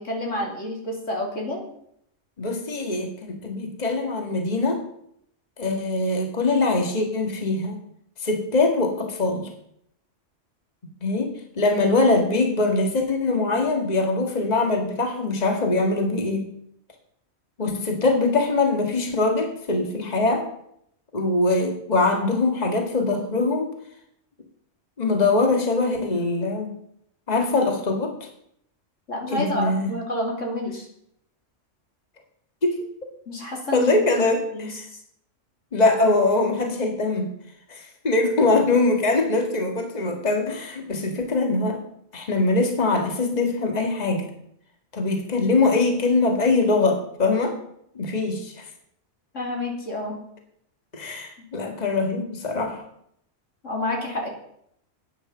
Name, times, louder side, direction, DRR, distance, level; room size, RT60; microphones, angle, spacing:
voice 1, 0.0-1.6 29.1-30.9 33.3-34.0 34.5-35.0 49.3-50.2 51.4-51.5 53.6-54.3, left 1 dB, 80° left, 0 dB, 3.4 m, -29 dB
voice 2, 2.4-4.8 5.6-7.8 8.2-9.5 11.0-16.5 17.6-20.4 21.1-23.7 25.0-26.7 27.3-28.3 29.3-29.9 32.6-32.8 33.7-34.8 35.7-37.3 37.7-41.8 42.1-44.3 44.9-47.6 48.0-48.6 50.9-52.8, left 3 dB, 35° left, 3 dB, 1.9 m, -22 dB
12.0 x 9.6 x 6.7 m, 0.72 s
omnidirectional pair, 1.3 m